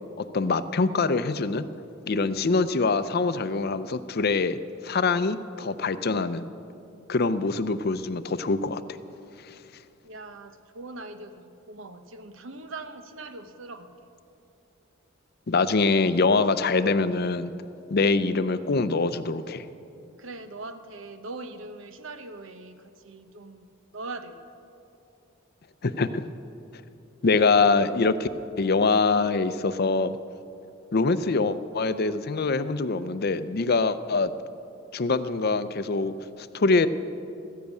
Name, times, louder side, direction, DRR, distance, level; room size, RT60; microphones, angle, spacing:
voice 1, 0.2-1.7 2.1-4.6 4.8-6.4 7.1-8.8 15.5-17.5 17.9-19.6 25.8-26.3 27.2-28.3 28.6-30.1 30.9-34.3 34.9-36.9, left 3 dB, 50° left, 13 dB, 0.5 m, -24 dB
voice 2, 10.0-14.1 20.2-23.7 23.9-24.4, right 2 dB, 75° right, 9 dB, 1.0 m, -41 dB
14.5 x 10.5 x 8.3 m, 2.7 s
head